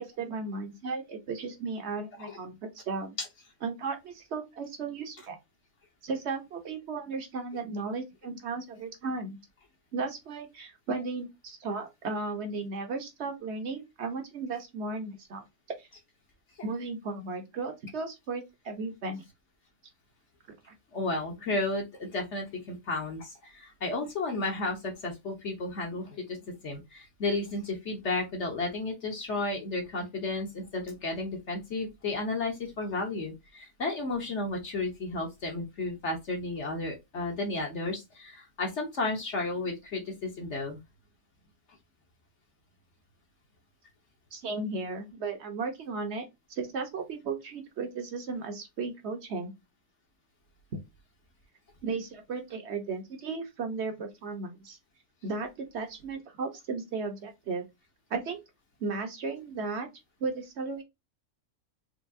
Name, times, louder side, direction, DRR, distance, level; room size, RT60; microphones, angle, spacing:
voice 1, 0.0-3.2 3.6-5.4 6.0-9.4 9.9-15.4 15.8-15.9 16.6-19.2 20.7-20.8 44.3-49.5 51.8-54.8 55.2-57.6 58.1-58.4 58.8-59.9 60.2-60.8, right 4 dB, 50° right, 1.2 m, -35 dB
voice 2, 20.9-26.4 26.6-40.8, left 2 dB, 55° left, 1.2 m, -33 dB
4.6 x 2.9 x 2.7 m
omnidirectional pair, 1.5 m